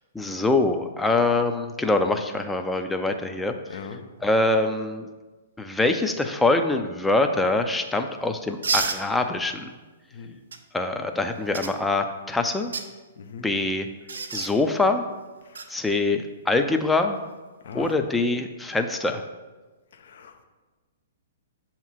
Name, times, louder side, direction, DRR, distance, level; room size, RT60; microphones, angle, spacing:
voice 1, 0.1-3.8 4.2-5.1 5.6-9.7 10.7-12.7 13.4-13.9 14.3-15.0 15.7-17.2 17.7-19.2, left 2 dB, 5° left, 6 dB, 0.5 m, -24 dB
voice 2, 3.7-4.0 10.1-10.4 13.2-13.5 17.6-18.0 20.0-20.4, left 6 dB, 60° left, 6 dB, 0.7 m, -39 dB
sound 1, 8.6-9.0 10.5-10.6 11.5-11.7 12.6-12.9 14.1-14.5 15.5-15.7 17.7-17.9, right 5 dB, 75° right, 0.6 m, -28 dB
7.1 x 3.0 x 5.7 m, 1.3 s
figure-of-eight pair, 120°, 0 cm